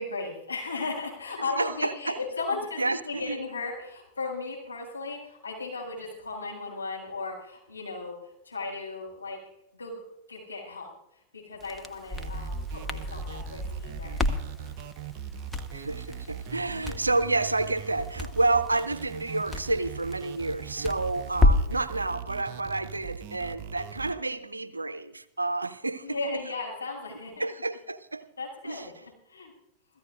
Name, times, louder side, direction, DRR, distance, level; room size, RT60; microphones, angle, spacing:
voice 1, 0.0-9.4 9.7-9.9 10.3-14.3 16.7-17.0 26.0-27.5 28.4-29.5, left 3 dB, 80° left, 6.9 m, -36 dB
voice 2, 1.4-2.2 2.8-3.4 15.7-26.2 27.1-28.3 28.6-29.0, right 2 dB, 80° right, 0.7 m, -30 dB
Crackle, 11.6-21.8, left 2 dB, 5° left, 1.2 m, -31 dB
sound 1, 12.1-24.1, right 9 dB, 45° right, 0.9 m, -41 dB
28.0 x 16.5 x 2.6 m
figure-of-eight pair, 90°, 0 cm